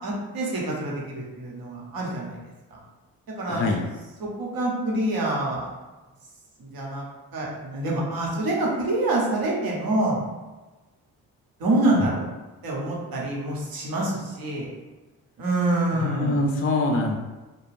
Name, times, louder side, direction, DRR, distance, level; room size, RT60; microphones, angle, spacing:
voice 1, 0.0-2.4 2.7-2.8 3.4-3.6 4.2-5.7 6.6-7.0 7.3-10.2 11.6-12.3 12.6-14.7 15.4-16.4, right 2 dB, 60° right, -3 dB, 1.0 m, -26 dB
voice 2, 3.5-3.8 11.9-12.1 15.9-17.1, left 2 dB, 35° left, 1 dB, 0.4 m, -24 dB
2.4 x 2.1 x 3.2 m, 1.2 s
hypercardioid pair, 45°, 39 cm